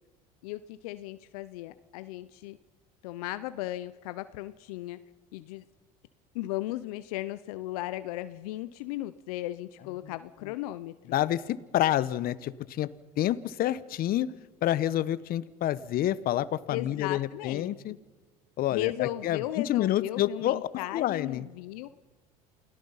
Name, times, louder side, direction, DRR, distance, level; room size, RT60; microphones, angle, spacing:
voice 1, 0.4-2.6 3.0-5.0 5.3-5.6 6.3-11.2 16.7-17.7 18.7-21.9, left 16 dB, 80° left, 14 dB, 0.8 m, -36 dB
voice 2, 11.1-12.9 13.2-14.3 14.6-17.9 18.6-21.5, left 12 dB, 55° left, 17 dB, 1.1 m, -28 dB
28.5 x 18.0 x 5.7 m, 1.3 s
supercardioid pair, 85°, 19 cm